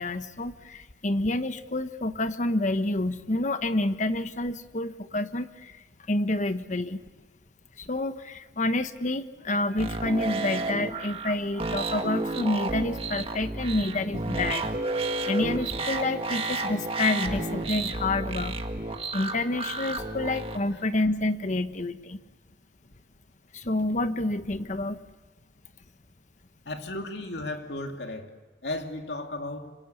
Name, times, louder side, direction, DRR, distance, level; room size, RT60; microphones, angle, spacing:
voice 1, 0.0-7.0 7.8-14.7 15.3-18.6 19.1-22.2 23.5-25.0, left 2 dB, 45° left, 10 dB, 1.2 m, -28 dB
sound 1, 9.8-20.6, right 2 dB, 35° right, 1.8 m, -31 dB
voice 2, 26.6-28.3 28.6-29.7, left 2 dB, 75° left, 4 dB, 2.7 m, -35 dB
26.5 x 26.0 x 8.3 m, 1.2 s
head